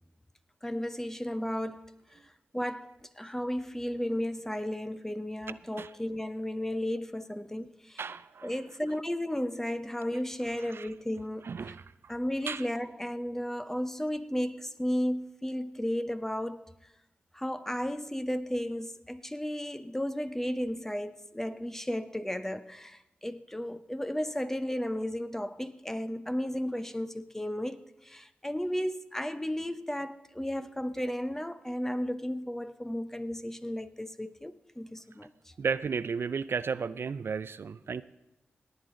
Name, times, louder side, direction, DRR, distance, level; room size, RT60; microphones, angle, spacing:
voice 1, 0.6-1.8 2.1-2.2 2.5-8.0 8.4-11.7 12.1-16.6 17.3-35.3, equal, 10° left, 0.8 m, -34 dB
voice 2, 8.0-8.5 10.7-10.9 11.4-11.8 12.5-12.6 35.6-38.0, right 5 dB, 70° right, 0.4 m, -33 dB
18.0 x 9.4 x 3.8 m
cardioid pair, 60°, 4 cm